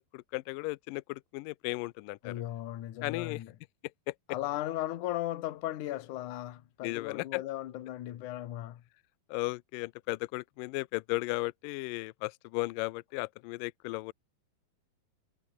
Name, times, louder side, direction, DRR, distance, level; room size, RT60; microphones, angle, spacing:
voice 1, 0.0-2.4 3.0-3.4 4.1-4.2 6.8-7.4 9.3-14.1, left 22 dB, 85° left, 1.9 m, -35 dB
voice 2, 2.2-3.5 4.3-8.8, left 14 dB, 60° left, 2.5 m, -36 dB
omnidirectional pair, 4.6 m